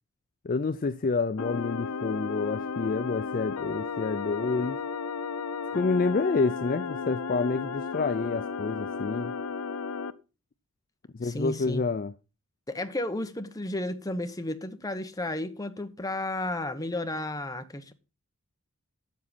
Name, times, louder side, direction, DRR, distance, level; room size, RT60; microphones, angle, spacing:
voice 1, 0.4-4.8 5.7-9.3 11.1-12.1, left 4 dB, 40° left, 0.4 m, -28 dB
sound 1, 1.4-10.1, left 5 dB, 85° left, 0.7 m, -34 dB
voice 2, 11.2-11.8 12.7-17.9, left 1 dB, 15° left, 1.0 m, -33 dB
8.3 x 7.4 x 5.8 m
head